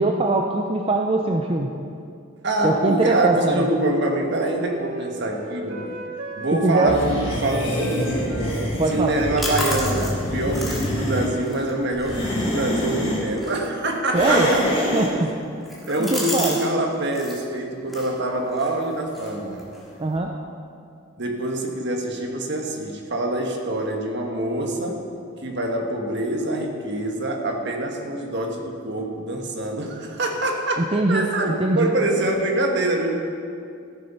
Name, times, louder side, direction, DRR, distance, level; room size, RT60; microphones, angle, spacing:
voice 1, 0.0-1.7 2.6-3.7 6.5-7.0 8.8-9.2 14.1-14.5 14.9-15.3 16.0-16.6 20.0-20.3 30.9-31.9, right 2 dB, 30° right, 2 dB, 0.5 m, -22 dB
voice 2, 2.4-5.9 6.4-8.5 8.9-14.6 15.9-19.6 21.2-25.1 25.4-33.2, right 1 dB, 60° right, 2 dB, 1.4 m, -25 dB
Wind instrument woodwind instrument, 4.2-7.0 7.3-10.8 11.1-11.6, right 2 dB, 75° right, 1.2 m, -37 dB
sound 1, 6.8-11.3 11.9-13.2 14.1-15.1, equal, 30° left, 2.6 m, -25 dB
sound 2, 8.9-16.7 16.9-17.4 17.8-20.2, equal, ahead, 2.0 m, -35 dB
13.5 x 7.0 x 5.6 m, 2.4 s
head